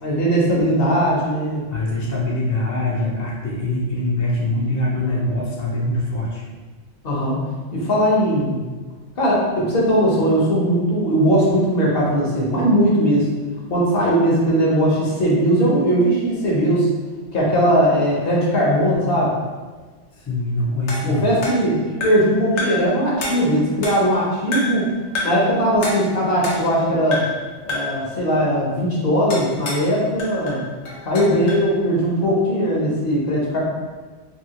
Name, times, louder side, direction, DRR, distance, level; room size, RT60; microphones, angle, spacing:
voice 1, 0.0-1.6 5.1-5.2 7.0-7.4 7.7-8.6 9.2-13.3 13.7-16.9 17.3-19.4 21.1-24.9 25.2-27.2 27.6-30.6 31.0-33.6, equal, 60° left, -5 dB, 1.0 m, -19 dB
voice 2, 1.7-6.4 20.1-21.4, left 1 dB, 25° left, -5 dB, 0.4 m, -23 dB
sound 1, 20.9-22.3 22.6-22.9 23.2-24.2 24.5-24.9 25.1-25.5 25.8-26.8 27.1-27.4 27.7-28.0 29.3-29.9 30.2-31.7, left 2 dB, 85° left, 1.0 m, -28 dB
2.8 x 2.7 x 2.8 m, 1.4 s
omnidirectional pair, 1.1 m